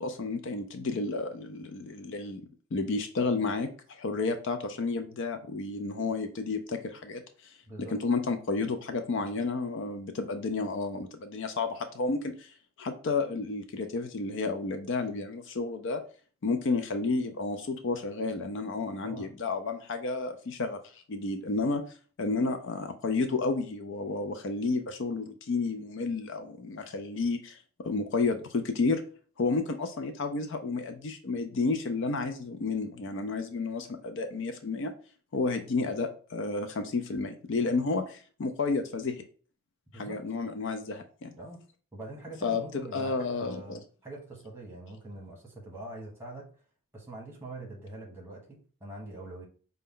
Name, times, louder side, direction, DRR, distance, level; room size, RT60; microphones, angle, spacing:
voice 1, 0.0-7.5 8.0-16.0 16.4-21.8 22.2-29.0 29.4-34.9 35.3-39.2 39.9-41.3 42.4-43.8, left 3 dB, 55° left, 8 dB, 0.4 m, -31 dB
voice 2, 39.9-40.2 41.3-41.6 41.9-46.5 46.9-49.5, right 2 dB, 10° right, -2 dB, 1.1 m, -43 dB
5.1 x 2.2 x 3.7 m, 0.41 s
head